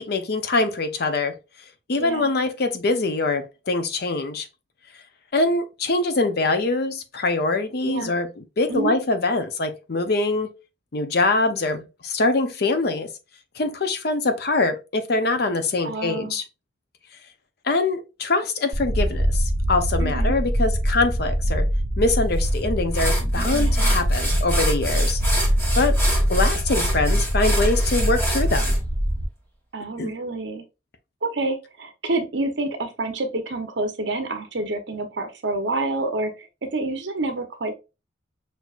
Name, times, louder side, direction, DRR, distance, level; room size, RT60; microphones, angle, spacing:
voice 1, 0.0-1.3 1.9-4.5 5.3-10.5 10.9-13.1 13.6-16.4 17.6-21.7 22.0-25.2 25.8-26.0 26.3-28.8 30.0-30.1, left 3 dB, 55° left, 0.6 m, -23 dB
voice 2, 2.0-2.3 7.8-8.1 8.7-8.9 15.8-16.4 20.0-20.3 23.4-24.0 29.7-30.6 31.2-37.8, right 2 dB, 65° right, 0.8 m, -28 dB
sound 1, 18.7-29.2, equal, 50° right, 1.2 m, -22 dB
sound 2, 22.4-22.5 22.9-28.8, equal, 15° left, 1.2 m, -28 dB
6.1 x 2.7 x 2.4 m
head